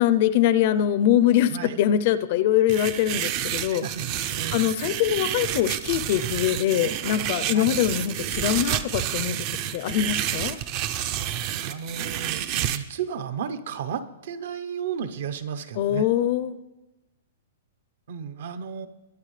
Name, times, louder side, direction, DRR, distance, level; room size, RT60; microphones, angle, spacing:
voice 1, 0.0-3.8 4.5-9.4 9.7-10.6 15.8-16.5, left 11 dB, 40° left, 14 dB, 0.5 m, -23 dB
sound 1, 2.7-12.8, right 11 dB, 30° right, 0.5 m, -29 dB
voice 2, 3.7-4.6 7.5-7.8 11.6-16.1 18.1-18.9, right 7 dB, 60° right, 12 dB, 0.9 m, -33 dB
22.5 x 9.7 x 3.3 m, 1.0 s
hypercardioid pair, 170°, 0 cm